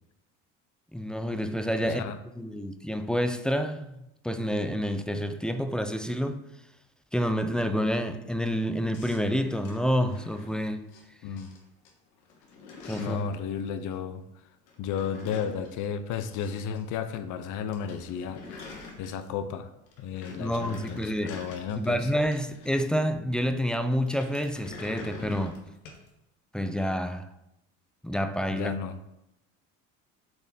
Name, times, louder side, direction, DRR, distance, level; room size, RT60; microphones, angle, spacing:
voice 1, 0.9-2.0 2.4-6.5 7.1-10.9 12.8-13.2 20.3-21.4 21.8-25.6 26.5-27.3 28.0-28.7, equal, ahead, 0.4 m, -28 dB
voice 2, 1.8-2.2 11.2-11.5 13.0-14.2 14.8-18.4 19.0-19.7 20.0-22.1 28.5-29.0, left 7 dB, 60° left, 0.6 m, -33 dB
sound 1, 8.9-11.0 11.4-11.9 12.2-13.4 14.7-16.8 17.1-17.2 17.5-17.6 17.7-19.5 19.9-23.0 24.0-26.1, left 3 dB, 85° left, 1.3 m, -46 dB
6.6 x 4.1 x 4.2 m
supercardioid pair, 95°, 35 cm